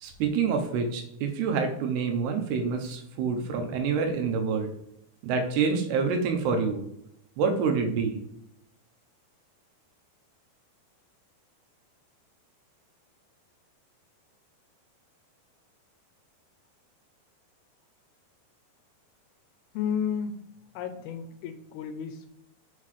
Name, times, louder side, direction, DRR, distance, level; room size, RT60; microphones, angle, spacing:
voice 1, 0.0-4.7 5.2-6.8 7.4-8.2, right 5 dB, 80° right, 4 dB, 2.9 m, -27 dB
voice 2, 19.7-20.3 20.8-22.3, left 7 dB, 90° left, 8 dB, 2.7 m, -32 dB
6.5 x 5.7 x 3.2 m, 0.75 s
omnidirectional pair, 4.7 m